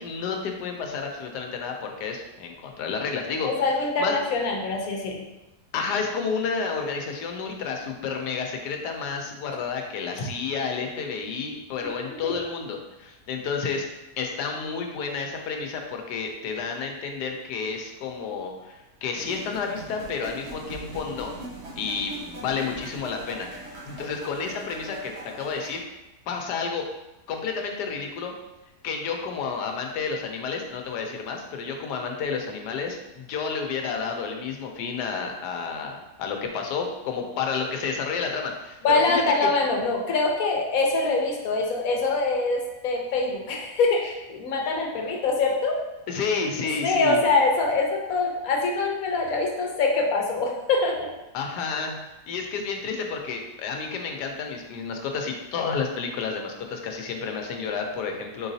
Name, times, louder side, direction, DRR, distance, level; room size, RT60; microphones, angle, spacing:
voice 1, 0.0-3.7 4.0-4.1 5.7-13.8 14.2-21.3 21.8-23.5 23.8-25.8 26.3-26.9 27.3-28.3 28.8-38.8 39.1-39.5 46.1-47.2 51.3-51.9 52.3-58.5, left 5 dB, 85° left, 3 dB, 1.2 m, -30 dB
voice 2, 3.4-5.2 11.8-11.9 12.2-12.3 38.8-45.8 46.8-51.1, left 3 dB, 65° left, 0 dB, 1.1 m, -24 dB
sound 1, 19.1-25.8, right 1 dB, 45° right, 1.3 m, -41 dB
4.6 x 3.9 x 2.7 m, 1.0 s
omnidirectional pair, 1.7 m